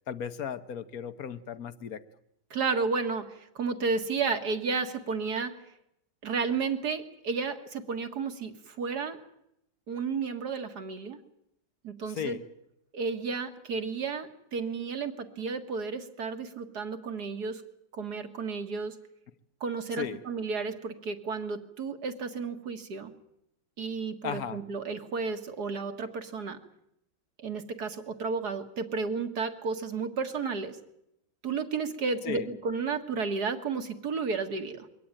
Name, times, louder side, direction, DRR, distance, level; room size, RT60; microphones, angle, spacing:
voice 1, 0.1-2.1 12.1-12.4 20.0-20.2 24.2-24.6 32.2-32.5, left 8 dB, 60° left, 1.4 m, -35 dB
voice 2, 2.5-5.5 6.2-9.2 9.9-11.2 11.8-12.4 12.9-17.6 17.9-18.9 19.6-23.1 23.8-26.6 27.4-30.8 31.4-34.9, right 4 dB, 65° right, 2.2 m, -32 dB
23.0 x 17.5 x 9.0 m
omnidirectional pair, 1.9 m